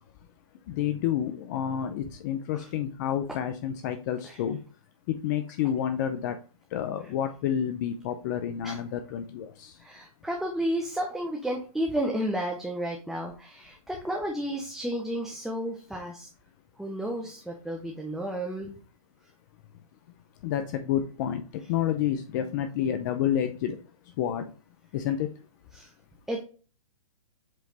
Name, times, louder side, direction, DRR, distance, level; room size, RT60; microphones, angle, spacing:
voice 1, 0.7-4.6 5.1-6.4 6.7-9.7 20.4-23.8 24.2-24.5 24.9-25.3, left 10 dB, 30° left, 8 dB, 0.6 m, -29 dB
voice 2, 9.8-16.3 16.8-18.8 25.7-25.9 26.3-26.4, right 1 dB, ahead, 0 dB, 0.7 m, -32 dB
7.6 x 3.2 x 3.9 m, 0.37 s
hypercardioid pair, 150°, 19 cm